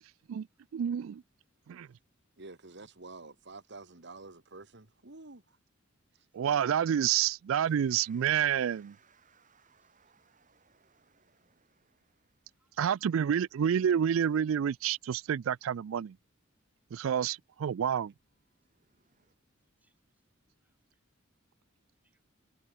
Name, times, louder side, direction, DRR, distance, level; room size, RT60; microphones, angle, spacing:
voice 1, 0.7-1.2 1.7-1.9 6.3-8.9 12.8-16.2 16.9-18.1, right 9 dB, 85° right, 0.4 m, -29 dB
voice 2, 2.4-5.4, right 3 dB, 60° right, 2.1 m, -49 dB
sound 1, 7.6-13.1 18.2-19.4, right 6 dB, 40° right, 3.3 m, -67 dB
voice 3, 9.5-9.9 10.2-10.4 12.5-13.0 19.8-20.0 20.6-21.0 22.0-22.2, right 1 dB, 10° right, 5.7 m, -78 dB
head